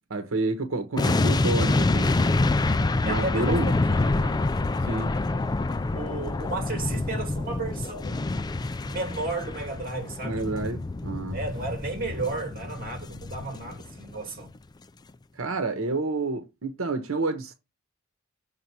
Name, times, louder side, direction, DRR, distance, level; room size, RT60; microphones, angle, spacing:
voice 1, 0.1-2.1 3.0-3.7 4.8-5.1 10.2-11.4 15.3-17.5, right 2 dB, 85° right, 1.0 m, -29 dB
sound 1, 1.0-14.1 14.4-14.6, left 2 dB, 20° left, 0.4 m, -27 dB
voice 2, 2.8-4.5 5.9-8.3 8.9-10.7 11.3-14.5, right 3 dB, 45° right, 2.2 m, -34 dB
6.8 x 3.8 x 6.0 m
head